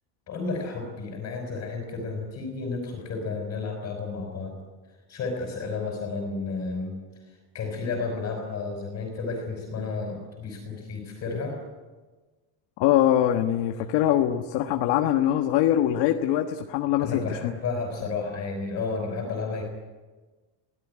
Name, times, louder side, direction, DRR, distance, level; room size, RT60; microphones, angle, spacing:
voice 1, 0.3-4.6 5.1-11.6 17.0-19.6, left 4 dB, 30° left, 1 dB, 5.0 m, -32 dB
voice 2, 12.8-17.5, left 11 dB, 60° left, 6 dB, 1.4 m, -23 dB
23.5 x 17.5 x 9.8 m, 1.3 s
cardioid pair, 175°, 48 cm